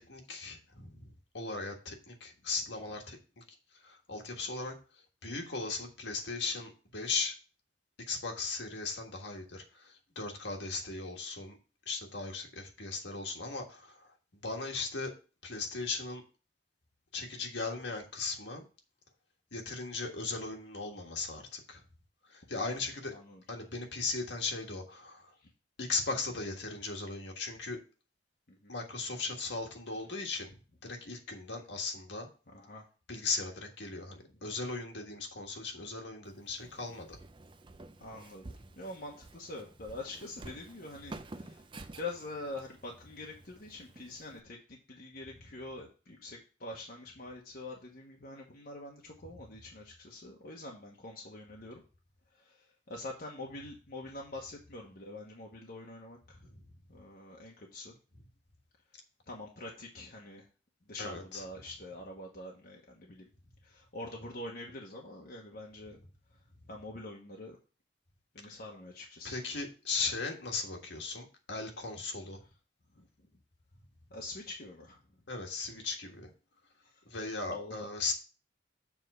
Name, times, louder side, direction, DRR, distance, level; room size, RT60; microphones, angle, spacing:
voice 1, 0.0-3.4 3.7-4.7 5.2-7.3 8.1-11.6 11.8-14.1 14.4-15.1 15.4-16.2 17.1-18.7 19.5-21.8 22.3-23.1 23.5-25.3 25.8-27.8 28.7-30.6 30.8-32.3 33.1-37.2 56.4-56.6 61.0-61.4 68.5-68.6 69.2-72.4 75.3-76.3 77.1-78.1, left 3 dB, 70° left, 2 dB, 1.6 m, -38 dB
voice 2, 23.1-23.4 25.4-25.5 28.5-28.7 32.5-32.8 34.2-34.4 38.0-41.6 42.0-44.6 44.9-51.8 52.3-56.5 56.9-58.0 59.3-60.5 60.9-63.3 63.6-66.0 66.3-66.4 66.7-67.6 68.3-69.4 72.9-73.1 74.1-75.0 76.8-77.0 77.5-77.9, left 2 dB, 55° left, -1 dB, 1.2 m, -45 dB
Walk footsteps, 36.2-44.4, right 2 dB, 25° right, 0.5 m, -51 dB
7.2 x 3.7 x 6.4 m, 0.35 s
head